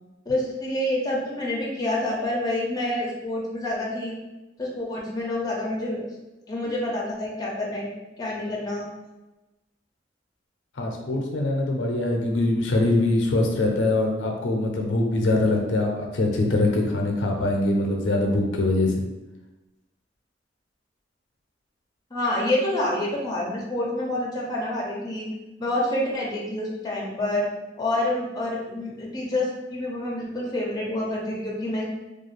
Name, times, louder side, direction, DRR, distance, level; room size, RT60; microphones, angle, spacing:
voice 1, 0.3-4.1 4.6-6.0 6.5-7.9 8.2-8.9 22.1-25.3 25.6-27.5 27.8-31.8, left 1 dB, 20° left, -3 dB, 0.5 m, -27 dB
voice 2, 10.8-18.9, left 2 dB, 75° left, 1 dB, 0.5 m, -23 dB
2.4 x 2.3 x 3.1 m, 1.0 s
head